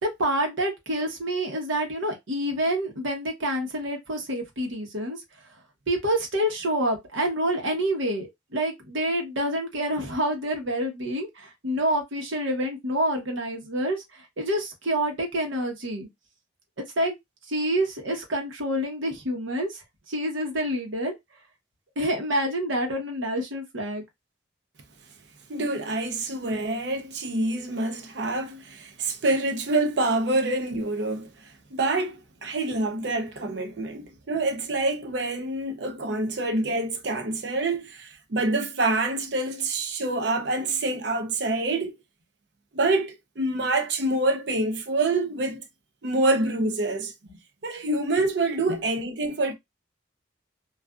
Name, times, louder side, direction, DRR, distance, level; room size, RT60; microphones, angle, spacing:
voice 1, 0.0-5.2 5.9-16.1 17.0-17.1 17.5-21.1 22.0-24.0, right 1 dB, 90° right, 0.9 m, -27 dB
voice 2, 25.5-41.9 42.7-45.6 46.0-47.1 47.6-49.5, right 2 dB, 60° right, 0.5 m, -26 dB
2.5 x 2.3 x 2.3 m
head